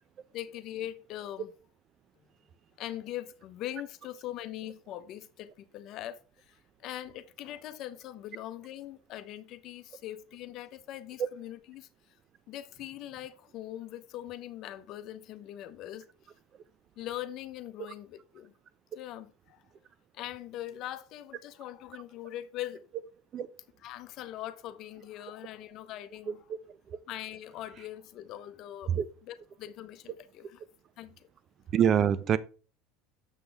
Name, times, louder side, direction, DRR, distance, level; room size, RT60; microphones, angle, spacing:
voice 1, 0.3-1.5 2.8-11.9 12.5-16.1 17.0-18.5 18.9-19.6 20.1-22.9 23.8-26.4 27.1-29.0 29.3-30.6 31.0-31.3, left 13 dB, 55° left, 0.8 m, -41 dB
voice 2, 31.7-32.4, right 8 dB, 40° right, 0.6 m, -25 dB
7.2 x 6.2 x 3.4 m
supercardioid pair, 105°, 0 cm